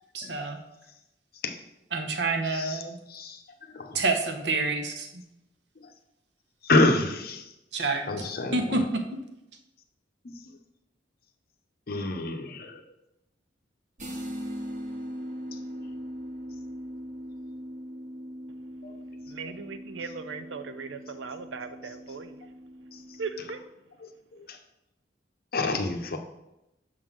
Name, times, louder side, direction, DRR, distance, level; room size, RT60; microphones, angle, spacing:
voice 1, 0.1-0.6 1.9-3.0 3.9-5.2 7.7-8.0 8.5-8.8, right 3 dB, 65° right, 0.9 m, -28 dB
voice 2, 2.5-2.8 3.1-3.4 3.7-4.0 6.6-7.5 8.1-8.8 11.9-12.8 18.8-18.9 24.0-24.1 24.5-24.6 25.5-26.2, left 2 dB, 55° left, 0.7 m, -27 dB
sound 1, 14.0-23.6, equal, 40° right, 1.1 m, -40 dB
voice 3, 19.3-22.4 23.2-23.6, right 4 dB, 85° right, 0.5 m, -38 dB
6.4 x 3.8 x 6.0 m
head